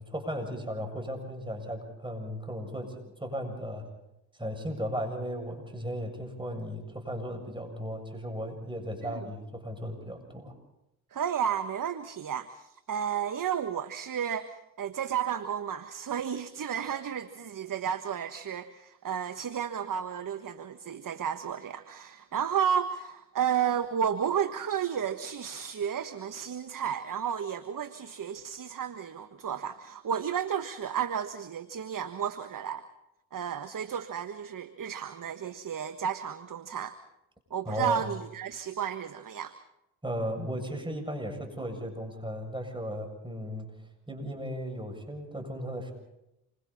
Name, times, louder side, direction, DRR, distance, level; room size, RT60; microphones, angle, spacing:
voice 1, 0.0-3.0 3.2-3.9 4.4-10.5 37.6-38.0 40.0-43.7 44.1-45.9, equal, 10° right, 3 dB, 7.3 m, -36 dB
voice 2, 11.1-32.8 33.3-37.0 37.5-39.5, right 8 dB, 45° right, 10 dB, 1.4 m, -32 dB
28.0 x 24.5 x 4.3 m, 0.88 s
hypercardioid pair, 50°, 45 cm